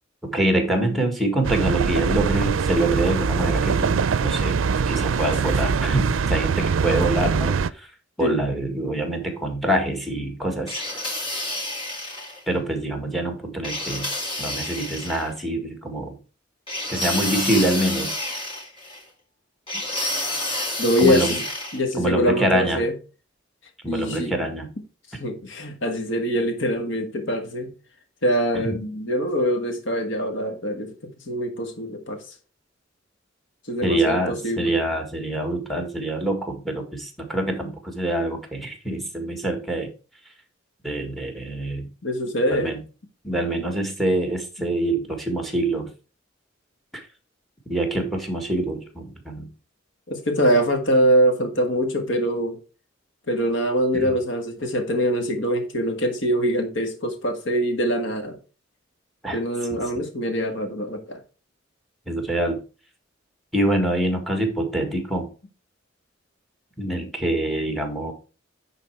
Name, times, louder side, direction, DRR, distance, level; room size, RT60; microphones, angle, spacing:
voice 1, 0.2-7.9 8.2-10.8 12.5-14.1 14.4-16.2 16.9-18.1 21.0-21.4 22.0-22.9 23.8-24.7 28.5-28.8 33.8-39.9 40.8-41.9 42.5-42.8 43.2-45.9 46.9-47.0 47.7-49.5 53.9-54.1 59.2-59.4 59.7-59.8 62.1-62.6 63.5-65.3 66.8-68.1, right 1 dB, ahead, 1.7 m, -25 dB
sound 1, 1.4-7.7, right 5 dB, 85° right, 0.4 m, -23 dB
sound 2, 10.7-12.4 13.6-15.3 16.7-19.0 19.7-21.8, left 1 dB, 30° left, 3.7 m, -29 dB
voice 2, 20.8-21.4 21.7-22.9 23.9-24.3 25.2-27.7 28.2-30.9 31.3-32.2 33.7-34.7 42.0-42.7 50.1-52.6 53.3-58.4 59.3-61.2, equal, 70° left, 1.6 m, -23 dB
9.8 x 4.0 x 4.5 m
head